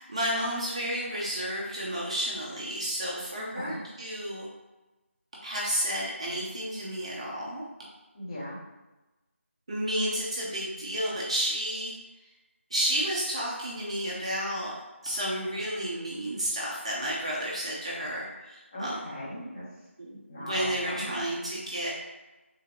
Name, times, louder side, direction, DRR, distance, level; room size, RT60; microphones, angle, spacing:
voice 1, 0.0-4.5 5.4-7.7 9.7-11.9 12.7-14.7 15.0-19.0 20.0-21.9, equal, 25° right, -5 dB, 0.5 m, -31 dB
voice 2, 3.3-3.8 8.1-8.6 18.7-19.6 20.3-21.1, left 1 dB, 25° left, -7 dB, 1.0 m, -38 dB
3.7 x 2.8 x 3.7 m, 1.1 s
figure-of-eight pair, 170°, 7 cm